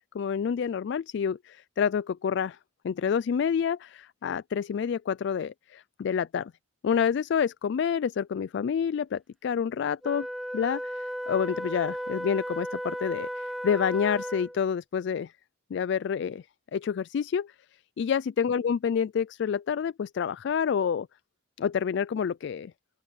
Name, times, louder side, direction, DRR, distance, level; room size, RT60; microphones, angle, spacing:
voice 1, 0.1-2.6 2.8-6.5 6.8-10.3 10.5-15.3 15.7-16.4 16.7-17.5 18.0-21.1 21.6-22.7, left 7 dB, 65° left, 0.3 m, -28 dB
Wind instrument woodwind instrument, 10.0-14.7, equal, ahead, 0.5 m, -35 dB
open air
head